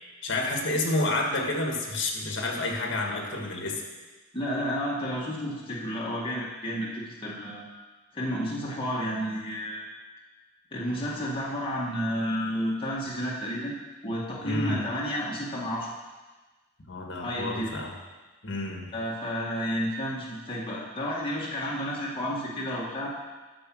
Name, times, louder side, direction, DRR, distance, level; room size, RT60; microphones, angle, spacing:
voice 1, 0.2-3.8 14.4-14.8 16.9-17.9 18.4-18.9, left 2 dB, 60° left, 1 dB, 1.7 m, -29 dB
voice 2, 4.3-7.6 8.1-9.9 10.7-13.7 14.0-15.9 17.2-17.8 18.9-23.1, equal, 25° left, -5 dB, 1.8 m, -31 dB
10.0 x 6.3 x 6.2 m, 1.3 s
head